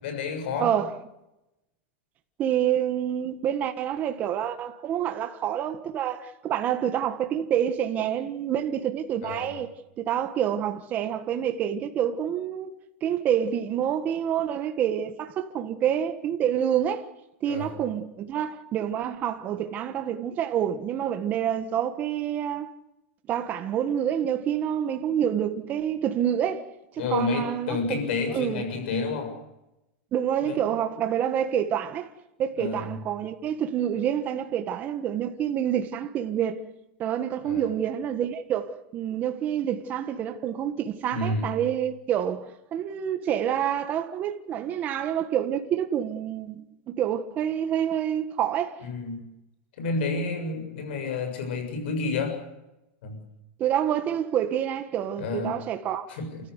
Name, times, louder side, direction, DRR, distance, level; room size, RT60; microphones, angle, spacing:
voice 1, 0.0-0.7 9.2-9.6 17.5-17.7 27.0-29.3 30.4-30.6 32.6-32.9 37.4-37.7 41.1-41.5 48.8-49.2 49.8-52.4 53.0-53.2 55.2-55.5 56.1-56.3, left 3 dB, 65° left, 6.9 m, -30 dB
voice 2, 0.6-0.9 2.4-9.7 10.0-12.7 13.0-17.1 17.4-22.7 23.3-26.6 26.9-27.8 28.0-28.6 30.1-32.1 32.4-36.6 37.0-48.8 53.6-56.1, right 9 dB, 25° right, 1.5 m, -27 dB
29.5 x 14.5 x 8.2 m
supercardioid pair, 170°, 6 cm